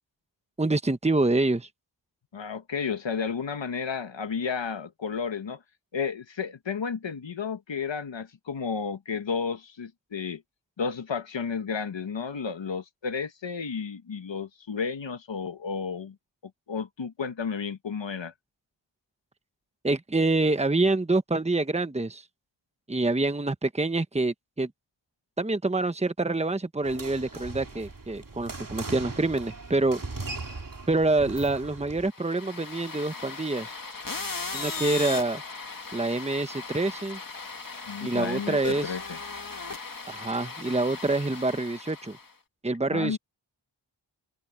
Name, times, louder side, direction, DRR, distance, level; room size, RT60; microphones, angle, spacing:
voice 1, 0.6-1.7 19.8-22.2 22.9-24.7 25.4-30.0 30.9-33.8 34.5-35.4 35.9-37.2 38.0-39.0 40.1-42.2 42.6-43.2, right 2 dB, 15° right, 1.1 m, -26 dB
voice 2, 2.3-5.6 5.9-10.4 10.8-16.1 16.7-18.3 37.9-39.2 42.9-43.2, left 6 dB, 85° left, 1.5 m, -32 dB
sound 1, 26.8-32.1, right 3 dB, 50° right, 2.7 m, -39 dB
sound 2, 32.1-42.3, left 4 dB, 50° left, 2.1 m, -37 dB
open air
wide cardioid pair, 60°, 44 cm